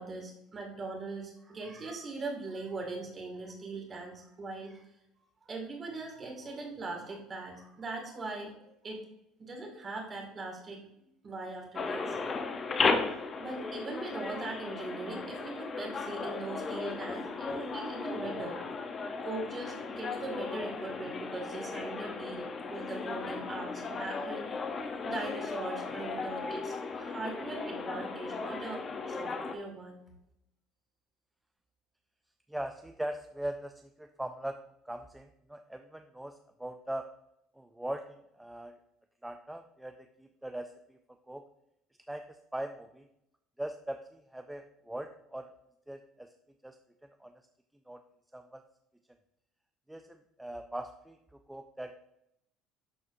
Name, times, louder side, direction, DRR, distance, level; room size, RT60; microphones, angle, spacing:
voice 1, 0.0-4.9 5.5-9.0 9.4-10.8 11.2-12.2 12.8-18.6 19.2-30.0, right 3 dB, 25° right, 1 dB, 2.1 m, -41 dB
sound 1, 11.7-29.6, left 4 dB, 30° left, 0.7 m, -36 dB
voice 2, 32.5-34.6 34.9-37.1 37.6-38.8 39.2-41.0 41.3-41.5 42.1-43.1 43.6-45.5 45.9-46.3 46.6-46.8 47.2-47.3 47.9-48.0 48.3-48.6 49.9-51.2 51.5-52.0, right 1 dB, 5° right, 6 dB, 0.3 m, -40 dB
11.5 x 4.2 x 2.6 m, 0.81 s
cardioid pair, 140°, 0 cm